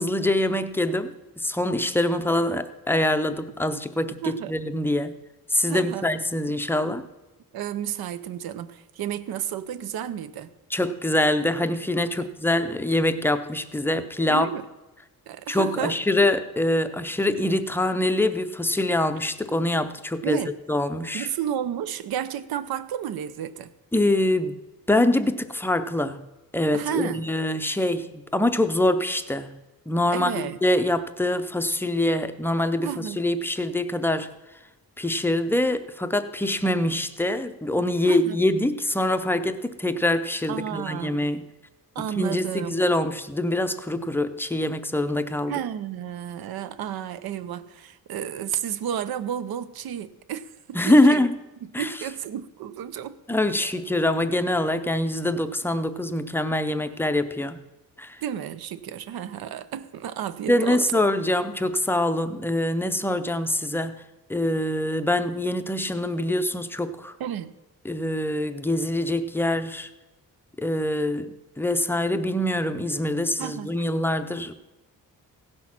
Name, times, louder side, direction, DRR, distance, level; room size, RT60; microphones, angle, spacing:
voice 1, 0.0-5.2 5.5-7.0 10.7-14.5 15.5-20.4 20.7-21.3 23.9-24.6 24.9-26.2 26.5-29.6 29.9-34.3 35.0-41.4 42.2-45.5 50.7-51.4 51.7-51.9 53.3-57.6 58.0-58.2 60.5-64.0 64.3-67.1 67.8-69.9 70.6-74.5, left 1 dB, 5° left, 9 dB, 0.5 m, -24 dB
voice 2, 4.2-4.6 5.7-6.1 7.5-10.5 12.2-12.3 14.3-14.6 15.3-16.0 20.2-20.5 21.1-23.7 26.7-27.3 30.1-30.6 32.8-33.3 38.1-38.4 40.5-41.2 41.9-42.8 45.5-51.3 51.6-53.2 58.2-61.0 67.2-67.6 73.4-73.9, right 10 dB, 90° right, 13 dB, 0.7 m, -32 dB
16.5 x 6.3 x 5.8 m, 1.1 s
wide cardioid pair, 160°, 36 cm